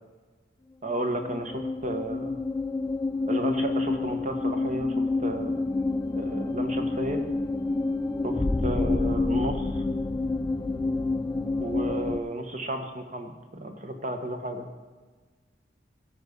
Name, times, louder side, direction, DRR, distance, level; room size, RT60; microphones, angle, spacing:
voice 1, 0.8-2.4 3.3-5.6 6.1-7.2 8.2-9.8 11.6-14.7, right 1 dB, 40° right, 5 dB, 1.3 m, -33 dB
sound 1, 0.9-12.2, left 3 dB, 20° left, 0.4 m, -28 dB
16.0 x 5.5 x 6.8 m, 1.4 s
head